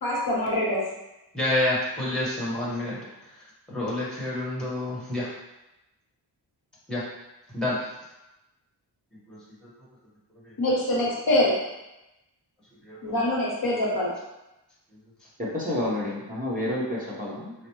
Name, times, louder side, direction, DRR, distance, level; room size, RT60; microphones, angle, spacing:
voice 1, 0.0-0.8 10.6-11.5 13.0-14.1, left 1 dB, 60° left, -4 dB, 1.0 m, -24 dB
voice 2, 1.3-3.0 3.7-5.3 6.9-7.0 7.5-7.8 9.3-9.4 12.8-13.1, left 1 dB, ahead, -8 dB, 1.3 m, -28 dB
voice 3, 15.4-17.5, left 1 dB, 20° right, -7 dB, 0.9 m, -29 dB
4.8 x 2.1 x 3.0 m, 0.96 s
wide cardioid pair, 130°, 41 cm